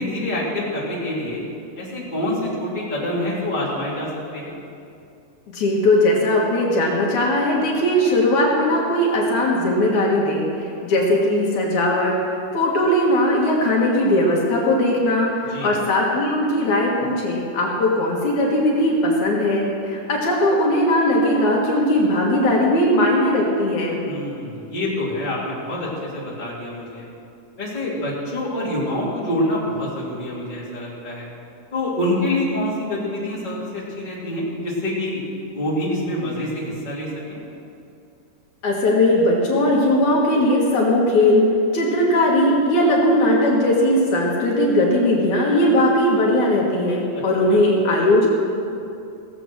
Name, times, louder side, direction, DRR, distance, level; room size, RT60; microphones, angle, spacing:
voice 1, 0.0-1.4 1.8-4.6 15.5-15.7 24.1-27.0 27.6-31.3 31.7-35.2 35.5-37.4 47.5-47.6, left 1 dB, 15° left, -6 dB, 2.7 m, -26 dB
voice 2, 5.5-12.2 12.5-24.0 38.6-41.5 41.7-48.3, left 1 dB, 70° left, -3 dB, 3.0 m, -19 dB
17.5 x 7.9 x 6.3 m, 2.6 s
omnidirectional pair, 3.7 m